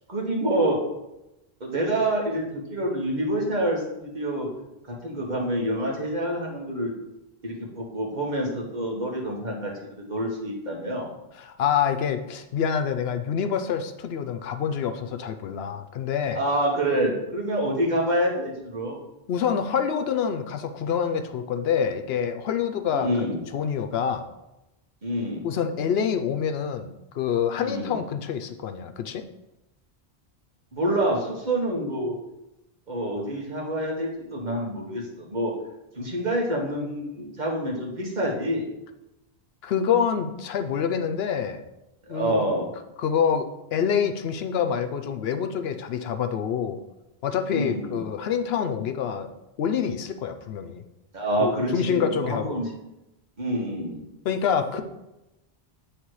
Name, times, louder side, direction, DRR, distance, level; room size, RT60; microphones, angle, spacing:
voice 1, 0.1-0.8 1.6-4.5 4.9-6.9 7.4-11.1 16.3-19.0 22.9-23.4 25.0-25.4 27.6-27.9 30.7-32.1 32.9-35.5 35.9-38.6 42.1-42.7 47.5-48.0 51.1-52.7 53.4-54.0, right 1 dB, 45° right, -2 dB, 1.5 m, -27 dB
voice 2, 11.4-16.4 19.3-23.1 23.5-24.2 25.4-29.2 39.6-41.6 42.1-42.4 43.0-46.8 47.2-49.3 49.6-50.8 51.4-52.6 54.2-54.8, left 7 dB, 75° left, 8 dB, 0.8 m, -26 dB
8.2 x 3.3 x 4.7 m, 0.93 s
omnidirectional pair, 1.1 m